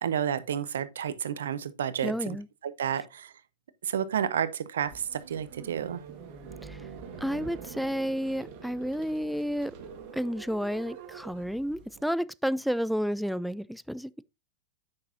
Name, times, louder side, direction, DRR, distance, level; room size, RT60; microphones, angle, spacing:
voice 1, 0.0-2.4 2.6-3.3 3.8-6.0, right 9 dB, 75° right, 0.7 m, -31 dB
voice 2, 2.0-2.5 6.6-6.8 7.2-9.7 10.1-14.2, equal, ahead, 0.3 m, -31 dB
sound 1, 4.9-12.0, right 6 dB, 55° right, 1.5 m, -45 dB
8.7 x 6.0 x 2.7 m
hypercardioid pair, 100°, 0 cm